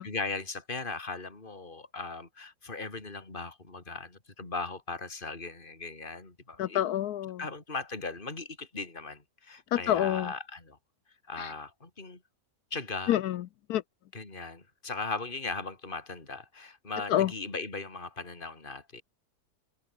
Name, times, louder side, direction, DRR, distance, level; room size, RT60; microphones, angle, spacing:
voice 1, 0.0-6.8 7.4-10.8 11.3-12.2 12.7-13.2 14.1-19.0, left 3 dB, 30° left, 3.7 m, -38 dB
voice 2, 6.6-7.4 9.7-10.3 13.1-13.4 13.7-13.8 17.1-17.3, left 12 dB, 70° left, 1.1 m, -27 dB
omnidirectional pair, 1.9 m